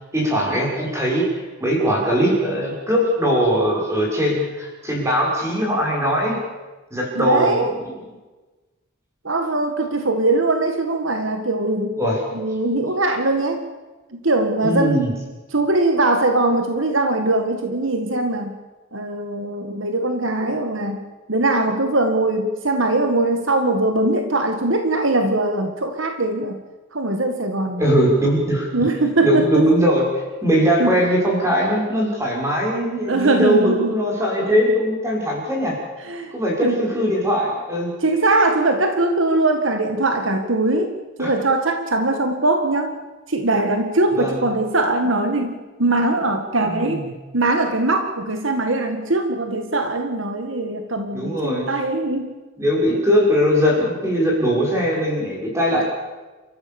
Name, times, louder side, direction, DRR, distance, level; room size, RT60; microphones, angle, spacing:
voice 1, 0.1-6.4 6.9-7.6 12.0-12.2 14.6-15.1 27.8-28.8 29.2-30.0 30.4-35.8 36.3-37.9 41.2-41.3 44.2-44.4 46.6-47.0 51.1-51.7 52.6-55.9, equal, 15° right, -2 dB, 5.9 m, -20 dB
voice 2, 7.2-7.7 9.2-12.0 12.3-13.6 14.1-15.1 15.5-18.6 18.9-21.0 21.3-26.6 26.9-27.9 28.7-29.7 30.8-31.0 33.0-34.0 36.0-36.3 36.6-36.8 38.0-43.0 43.3-47.1 47.3-52.3 52.9-53.0 55.7-55.8, right 2 dB, 65° right, 6 dB, 1.8 m, -21 dB
29.5 x 14.0 x 7.1 m, 1.2 s
head